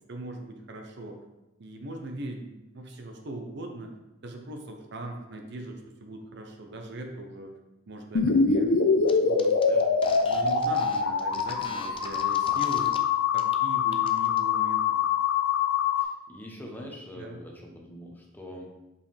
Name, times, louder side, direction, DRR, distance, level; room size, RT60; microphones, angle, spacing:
voice 1, 0.1-1.2 1.6-3.9 4.2-7.5 7.9-8.8 9.0-9.6 10.3-12.9 13.3-14.8 17.2-17.4, right 1 dB, 55° right, 3 dB, 0.7 m, -40 dB
sound 1, 8.2-16.0, left 5 dB, 90° left, 0.6 m, -24 dB
sound 2, 9.1-9.2 9.4-13.0 13.3-13.6 13.9-14.4, left 4 dB, 25° left, 0.4 m, -42 dB
voice 2, 16.0-18.7, equal, 10° left, -1 dB, 0.8 m, -43 dB
5.4 x 5.1 x 3.3 m, 0.98 s
head